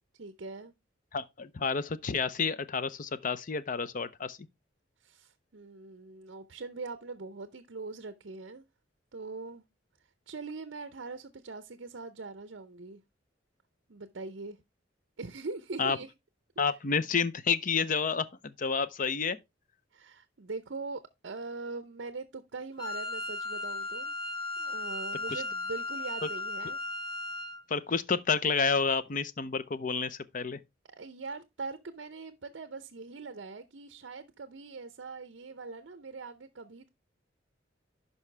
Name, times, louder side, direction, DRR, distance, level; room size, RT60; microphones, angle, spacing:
voice 1, 0.2-0.7 5.0-8.6 9.1-9.6 10.3-13.0 13.9-14.6 15.2-16.1 16.7-16.8 19.9-24.1 24.6-26.8 30.9-36.9, right 3 dB, 65° right, 0.7 m, -42 dB
voice 2, 1.1-4.4 15.8-16.0 16.6-19.4 25.3-25.4 27.7-30.6, left 5 dB, 45° left, 0.6 m, -30 dB
Wind instrument woodwind instrument, 22.8-27.6, left 2 dB, 25° left, 1.7 m, -36 dB
11.0 x 5.5 x 3.3 m
head